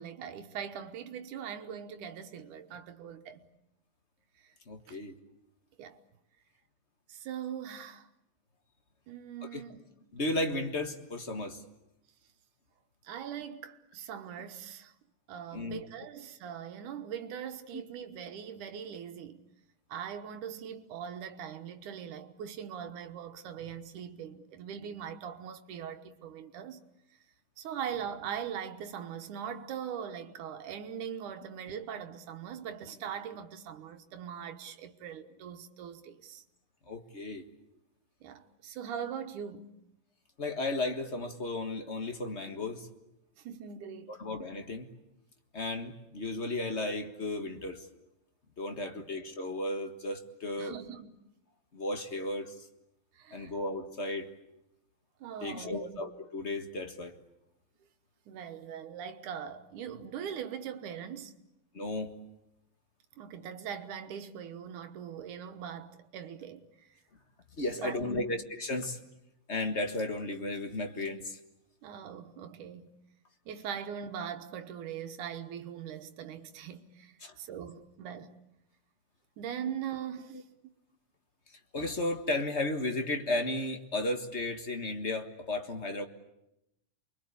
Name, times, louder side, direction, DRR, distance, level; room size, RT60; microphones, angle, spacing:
voice 1, 0.0-3.5 4.4-4.5 4.9-5.0 5.8-6.0 7.1-8.1 9.1-9.8 13.0-14.9 15.3-19.5 19.9-26.8 27.6-36.4 38.2-39.8 43.4-44.2 48.8-49.1 50.6-51.2 53.1-53.5 55.2-56.0 58.3-61.4 63.2-66.9 67.7-68.3 71.8-73.0 73.5-78.4 79.4-80.4, right 8 dB, 85° right, 2.8 m, -41 dB
voice 2, 4.7-5.1 9.5-9.6 10.1-11.6 15.5-15.8 36.9-37.4 40.4-42.9 44.1-44.9 45.5-47.9 48.6-50.8 51.7-52.5 53.3-54.3 55.4-57.1 61.7-62.1 67.6-69.0 69.5-71.4 77.2-77.4 81.7-86.1, left 2 dB, 35° left, 1.2 m, -34 dB
29.0 x 23.0 x 8.5 m
omnidirectional pair, 3.4 m